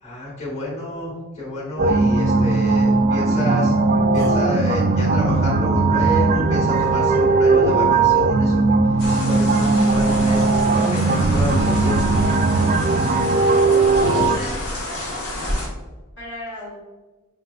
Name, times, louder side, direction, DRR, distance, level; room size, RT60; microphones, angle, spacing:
voice 1, 0.0-3.8 4.1-8.6 8.9-12.0, left 1 dB, 30° left, -5 dB, 1.3 m, -29 dB
sound 1, 1.8-14.4, right 3 dB, 40° right, 0.3 m, -18 dB
sound 2, 4.2-4.4 6.7-7.0 8.3-8.4 9.0-9.3 11.3-12.1, right 1 dB, 15° left, 0.8 m, -38 dB
sound 3, 9.0-15.7, left 1 dB, 85° left, 1.2 m, -29 dB
voice 2, 13.1-15.1 16.2-16.8, left 1 dB, 55° left, -7 dB, 1.2 m, -36 dB
5.6 x 2.9 x 2.3 m, 1.2 s
head